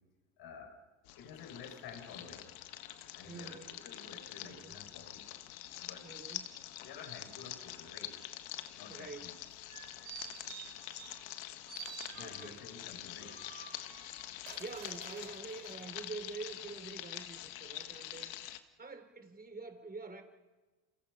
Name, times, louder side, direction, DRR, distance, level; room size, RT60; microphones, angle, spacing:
voice 1, 0.4-0.8 1.2-2.5 3.1-5.3 5.7-6.1 6.8-8.2 8.7-9.3 12.1-13.5, left 5 dB, 65° left, 3 dB, 6.3 m, -51 dB
sound 1, 1.1-18.6, left 14 dB, 80° left, 1.5 m, -46 dB
voice 2, 3.3-3.7 4.4-4.8 6.0-6.6 8.9-9.3 12.2-12.6 13.8-14.0 14.6-18.4 18.8-20.2, right 4 dB, 20° right, 7 dB, 4.0 m, -46 dB
sound 2, 9.5-11.4 11.7-12.7 13.2-15.8 16.3-16.4, right 8 dB, 85° right, 5.1 m, -50 dB
30.0 x 28.0 x 5.6 m, 1.3 s
hypercardioid pair, 75°, 41 cm